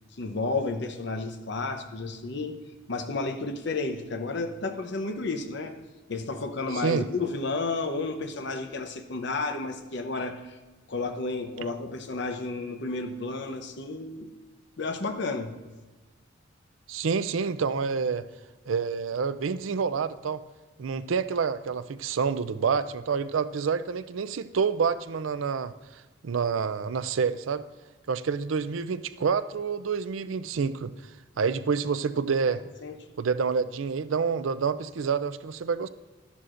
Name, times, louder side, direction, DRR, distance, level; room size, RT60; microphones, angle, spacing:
voice 1, 0.2-2.6 2.9-5.8 6.1-10.6 10.9-14.3 14.8-15.5 32.8-32.9, left 3 dB, 60° left, 6 dB, 0.8 m, -32 dB
voice 2, 16.9-18.3 18.7-20.4 20.8-25.7 26.2-27.6 28.1-30.9 31.4-32.6 33.2-35.9, right 5 dB, 75° right, 14 dB, 0.4 m, -28 dB
12.5 x 11.0 x 2.5 m, 1.2 s
head